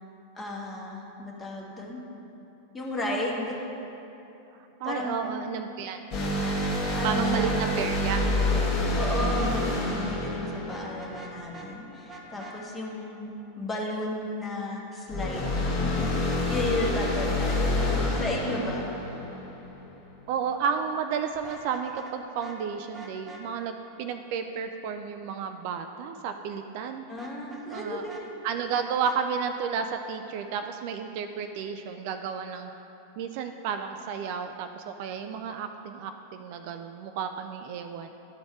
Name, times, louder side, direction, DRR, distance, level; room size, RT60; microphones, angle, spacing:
voice 1, 0.3-2.0 2.7-3.6 4.8-5.4 6.9-7.7 9.0-18.9 27.1-28.3, left 2 dB, 15° left, -3 dB, 1.4 m, -34 dB
voice 2, 4.8-6.0 7.0-8.3 18.6-18.7 20.3-27.0 27.7-28.0 28.4-32.7 33.2-38.1, right 6 dB, 45° right, 7 dB, 0.3 m, -32 dB
sound 1, 6.1-11.6 15.1-19.8, left 1 dB, 40° left, 1.7 m, -27 dB
Vehicle horn car horn honking, 10.6-11.7 12.1-12.6 16.0-16.7 16.9-17.1 17.5-17.9 21.3-22.1 22.4-22.6 22.9-23.4 27.2-28.2 28.7-29.2, right 3 dB, 10° right, 1.0 m, -44 dB
11.5 x 4.1 x 4.7 m, 3.0 s
figure-of-eight pair, 90°, 0 cm